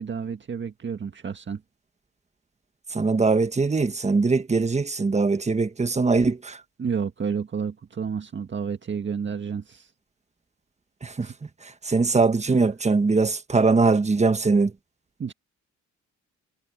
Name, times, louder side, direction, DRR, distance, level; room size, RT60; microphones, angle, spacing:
voice 1, 0.0-1.6 6.8-9.9 11.2-11.3 15.2-15.3, right 6 dB, 40° right, 1.7 m, -30 dB
voice 2, 2.9-6.6 11.0-11.3 11.6-14.7, right 4 dB, 20° right, 1.4 m, -22 dB
cardioid pair, 90°, 30 cm